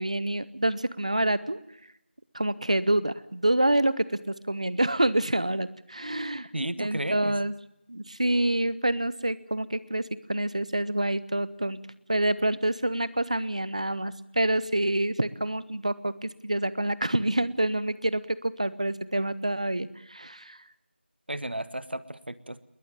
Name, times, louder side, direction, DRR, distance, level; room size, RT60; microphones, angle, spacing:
voice 1, 0.0-1.6 2.3-6.5 6.8-7.5 7.9-11.8 12.1-20.6, right 1 dB, 35° right, 18 dB, 0.8 m, -27 dB
voice 2, 6.5-7.3 21.3-22.6, right 1 dB, 55° right, 15 dB, 1.4 m, -33 dB
21.0 x 19.5 x 8.9 m, 0.80 s
figure-of-eight pair, 180°, 6 cm